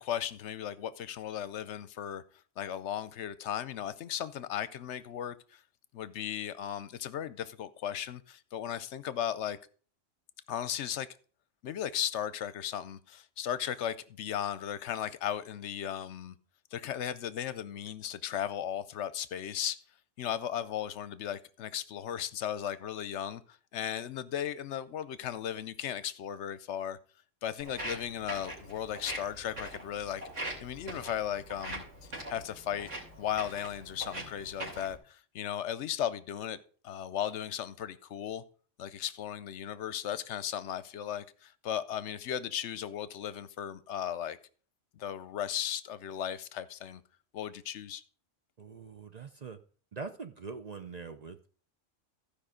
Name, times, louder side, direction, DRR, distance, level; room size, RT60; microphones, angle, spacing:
voice 1, 0.0-2.2 2.6-5.6 5.9-9.6 10.5-11.1 11.6-16.3 16.7-19.8 20.2-27.0 27.4-30.2 30.6-31.8 32.3-32.9 33.2-36.6 36.8-38.4 38.8-44.4 44.9-47.0 47.3-48.0, left 10 dB, 70° left, 0.9 m, -36 dB
Walk footsteps, 27.6-35.0, right 1 dB, 85° right, 3.3 m, -42 dB
voice 2, 48.6-49.6 49.9-51.5, right 4 dB, 45° right, 0.6 m, -43 dB
14.5 x 5.2 x 5.0 m
omnidirectional pair, 1.2 m